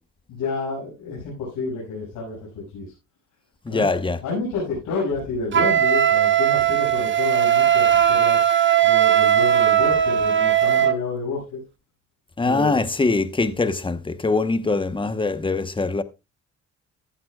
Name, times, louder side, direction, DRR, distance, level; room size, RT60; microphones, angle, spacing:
voice 1, 0.3-2.9 3.7-3.9 4.2-8.4 8.8-11.6 12.4-12.7, left 4 dB, 85° left, 6.5 m, -29 dB
voice 2, 3.6-4.2 12.4-16.0, left 3 dB, 15° left, 1.1 m, -23 dB
Wind instrument woodwind instrument, 5.5-11.0, right 10 dB, 40° right, 1.0 m, -18 dB
15.0 x 11.0 x 2.4 m
cardioid pair, 90°, 30 cm